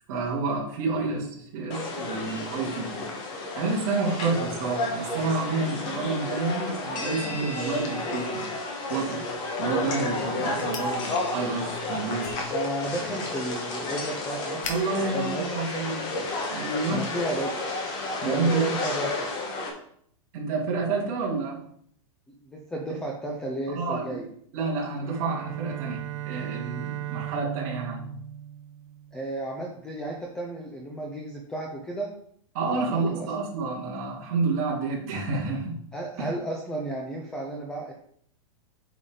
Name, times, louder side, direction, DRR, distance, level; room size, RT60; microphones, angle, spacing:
voice 1, 0.1-2.9 3.5-8.5 8.9-9.3 9.6-12.4 12.9-13.0 14.7-16.1 16.5-17.1 18.2-18.7 20.3-21.7 23.7-24.2 24.5-28.1 32.5-35.7 36.2-36.3, right 3 dB, 35° right, -3 dB, 2.3 m, -29 dB
sound 1, 1.7-19.7, left 2 dB, 25° left, 1.1 m, -32 dB
sound 2, 10.5-16.4, left 5 dB, 65° left, 1.6 m, -45 dB
voice 2, 12.5-14.7 15.0-15.5 16.9-17.6 18.2-19.3 22.4-24.3 29.1-32.1 32.7-33.3 35.9-37.9, right 1 dB, 5° left, 0 dB, 0.4 m, -33 dB
Bowed string instrument, 25.0-29.4, right 14 dB, 60° right, 0.9 m, -37 dB
8.1 x 5.2 x 3.7 m, 0.64 s
supercardioid pair, 175°, 18 cm